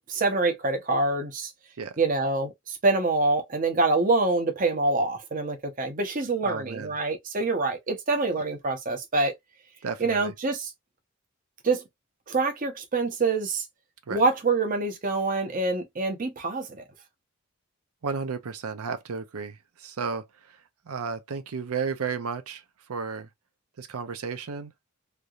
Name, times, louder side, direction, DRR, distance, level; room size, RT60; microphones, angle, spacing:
voice 1, 0.0-1.5 2.0-9.3 10.0-10.7 11.6-11.8 12.3-13.7 14.1-16.8, right 3 dB, 40° right, 0.7 m, -26 dB
voice 2, 6.4-6.9 9.8-10.3 14.1-14.2 18.0-20.6 20.9-22.6 22.9-23.3 23.8-24.7, right 5 dB, 90° right, 0.6 m, -33 dB
3.3 x 2.7 x 2.3 m
head